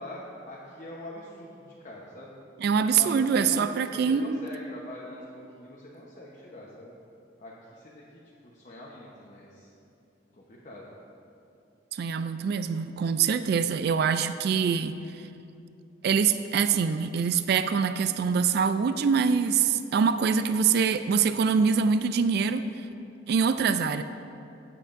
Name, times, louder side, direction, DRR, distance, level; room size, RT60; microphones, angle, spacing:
voice 1, 0.0-2.3 2.9-6.9 7.4-8.0 8.4-9.7 10.3-10.9, left 1 dB, 40° left, -5 dB, 0.9 m, -43 dB
voice 2, 2.6-4.4 11.9-15.0 16.0-22.7 23.3-24.0, right 6 dB, 60° right, 11 dB, 0.3 m, -24 dB
16.0 x 7.5 x 2.6 m, 2.7 s
head